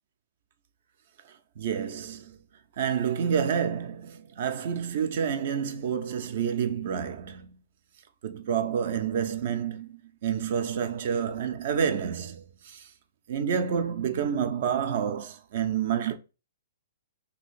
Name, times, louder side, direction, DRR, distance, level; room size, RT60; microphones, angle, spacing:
voice 1, 1.6-2.4 2.8-7.6 8.2-12.9 13.3-16.2, right 7 dB, 45° right, 0.4 m, -29 dB
3.0 x 2.8 x 4.1 m
figure-of-eight pair, 115°, 0 cm